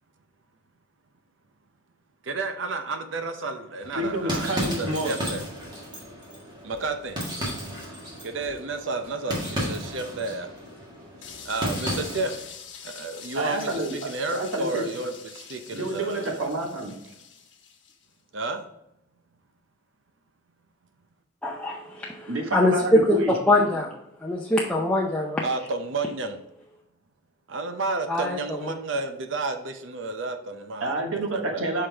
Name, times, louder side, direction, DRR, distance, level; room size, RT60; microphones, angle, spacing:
voice 1, 2.2-4.5 4.8-5.4 6.6-7.2 8.2-10.5 11.4-12.5 12.8-13.7 14.1-16.4 18.3-18.7 25.4-26.4 27.5-30.9 31.3-31.6, right 3 dB, 65° right, 7 dB, 0.6 m, -31 dB
sound 1, 3.8-12.5, equal, 20° right, 1.7 m, -34 dB
voice 2, 3.9-5.2 13.3-13.9 14.3-14.9 15.7-16.9 22.3-23.3 30.8-31.9, right 1 dB, 80° right, 2 dB, 1.4 m, -28 dB
sound 2, 11.2-18.1, left 7 dB, 65° left, 1.1 m, -44 dB
voice 3, 21.4-23.9 24.2-25.4 28.1-28.4, left 1 dB, 5° left, -3 dB, 0.6 m, -23 dB
5.7 x 5.1 x 3.4 m, 0.81 s
head